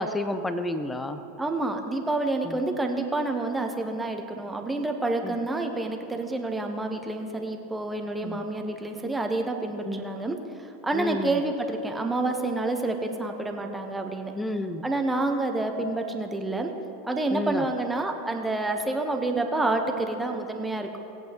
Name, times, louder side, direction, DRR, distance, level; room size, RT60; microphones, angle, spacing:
voice 1, 0.0-1.2 2.4-2.5 5.2-5.4 8.2-8.4 9.8-10.0 10.9-11.4 14.3-14.8 17.3-17.6, left 1 dB, 10° left, 10 dB, 0.7 m, -30 dB
voice 2, 1.4-10.4 10.8-14.3 14.8-16.7 17.0-21.0, right 2 dB, 10° right, 4 dB, 1.1 m, -28 dB
19.0 x 8.3 x 3.1 m, 2.8 s
figure-of-eight pair, 85°, 0 cm